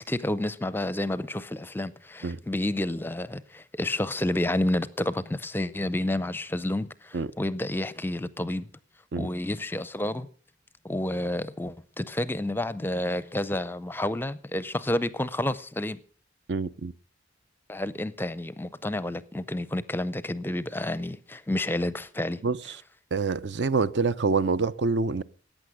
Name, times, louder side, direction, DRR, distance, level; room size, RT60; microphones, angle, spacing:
voice 1, 0.1-8.7 9.2-10.3 10.8-16.0 17.7-22.4, left 1 dB, 10° left, 0.5 m, -30 dB
voice 2, 16.5-16.9 22.4-22.6 23.1-25.2, right 4 dB, 60° right, 0.5 m, -26 dB
14.5 x 9.1 x 6.3 m
head